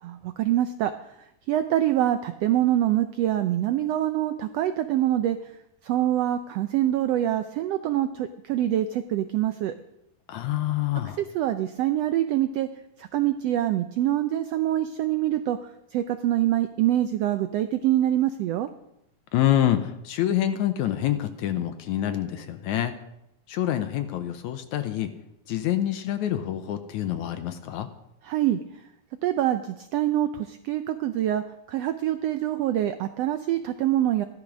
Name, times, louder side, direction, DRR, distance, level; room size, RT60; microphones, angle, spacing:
voice 1, 0.0-0.9 1.5-5.4 5.8-9.7 11.2-12.7 13.0-18.7 28.2-28.6 29.2-34.2, right 12 dB, 85° right, 9 dB, 1.4 m, -25 dB
voice 2, 10.3-11.2 19.3-22.9 23.5-25.1 25.5-27.9, left 12 dB, 75° left, 8 dB, 2.1 m, -26 dB
14.0 x 12.0 x 6.1 m, 0.83 s
omnidirectional pair, 3.6 m